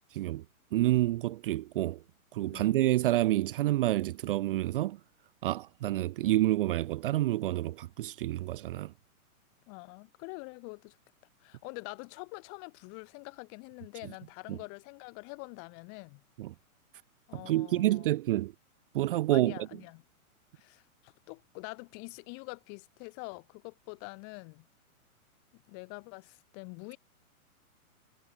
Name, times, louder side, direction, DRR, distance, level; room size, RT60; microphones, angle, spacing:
voice 1, 0.2-0.5 0.7-2.0 2.3-5.0 5.4-8.9 14.0-14.1 14.5-14.6 16.4-16.5 17.3-18.5 18.9-19.7, right 15 dB, 40° right, 0.7 m, -28 dB
voice 2, 9.7-11.0 11.4-16.2 17.3-18.1 19.3-20.0 20.5-24.7 25.5-27.0, left 36 dB, 35° left, 7.7 m, -45 dB
hypercardioid pair, 145°, 43 cm